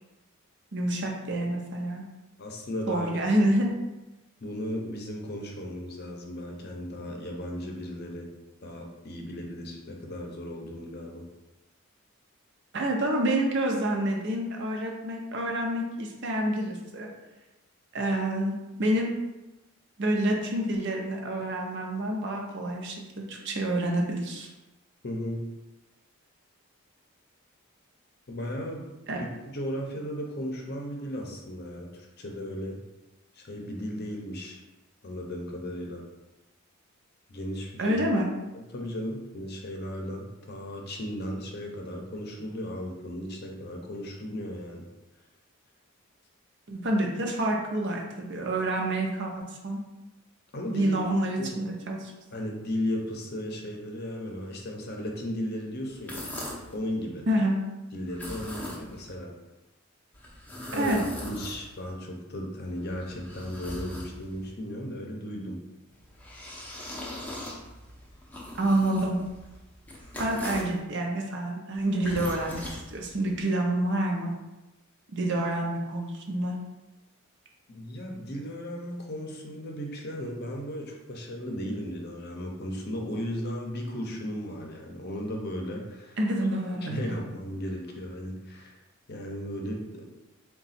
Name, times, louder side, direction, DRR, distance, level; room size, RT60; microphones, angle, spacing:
voice 1, 0.7-2.0 2.9-3.7 12.7-17.1 17.9-19.1 20.0-23.0 23.3-24.5 29.1-29.2 37.8-38.3 46.7-49.8 50.7-52.1 57.3-57.5 60.7-61.0 68.5-69.2 70.2-74.3 75.1-76.6 86.2-87.2, right 1 dB, 55° right, 0 dB, 0.7 m, -28 dB
voice 2, 2.4-3.1 4.4-8.3 8.6-11.3 25.0-25.5 28.3-28.9 29.2-32.8 33.3-34.6 35.0-36.0 37.3-38.0 38.5-44.9 50.5-50.9 51.4-51.5 52.3-56.3 56.7-57.3 57.9-59.3 60.7-61.0 61.2-65.6 77.7-86.2 86.9-88.8 89.1-90.3, equal, 50° left, 1 dB, 0.7 m, -35 dB
sound 1, 55.9-56.8 58.1-59.1 60.1-61.9 62.6-64.5 65.9-70.8 71.7-73.4, left 1 dB, 5° left, 0.6 m, -40 dB
3.9 x 2.3 x 4.1 m, 1.0 s
head